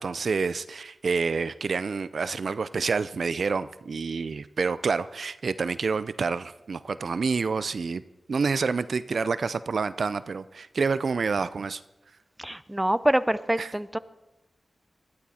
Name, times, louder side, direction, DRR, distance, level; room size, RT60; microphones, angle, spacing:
voice 1, 0.0-8.0 8.3-11.8 13.6-13.7, right 4 dB, 70° right, 14 dB, 0.4 m, -28 dB
voice 2, 12.4-14.0, right 1 dB, 10° right, 14 dB, 0.6 m, -25 dB
19.0 x 13.0 x 4.2 m, 1.0 s
wide cardioid pair, 75°, 0 cm